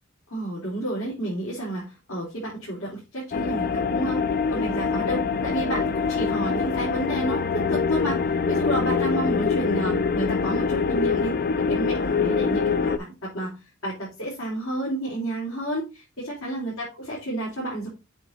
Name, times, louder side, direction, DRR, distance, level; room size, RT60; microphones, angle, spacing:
voice 1, 0.3-4.2 4.5-8.2 8.5-17.9, right 1 dB, 80° left, -6 dB, 3.5 m, -30 dB
sound 1, 3.3-13.0, left 5 dB, 45° left, 0.4 m, -24 dB
8.0 x 3.7 x 3.9 m, 0.26 s
head